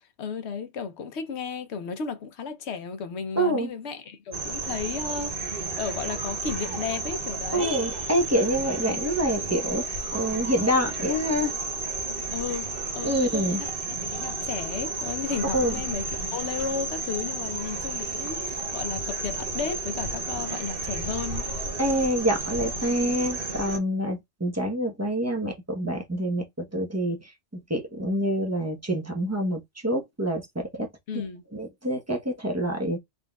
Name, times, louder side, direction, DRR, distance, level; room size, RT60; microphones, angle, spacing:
voice 1, 0.2-7.7 8.8-9.0 12.3-12.7 12.9-13.7 14.0-21.4 31.1-31.4, left 6 dB, 70° left, 1.0 m, -34 dB
voice 2, 3.4-3.7 7.5-11.5 13.0-13.6 15.5-15.8 21.8-27.3 27.7-30.9 31.1-31.2 31.5-33.0, equal, 15° right, 0.9 m, -26 dB
sound 1, 4.3-23.8, right 3 dB, 55° right, 1.1 m, -32 dB
3.8 x 3.6 x 2.3 m
omnidirectional pair, 1.2 m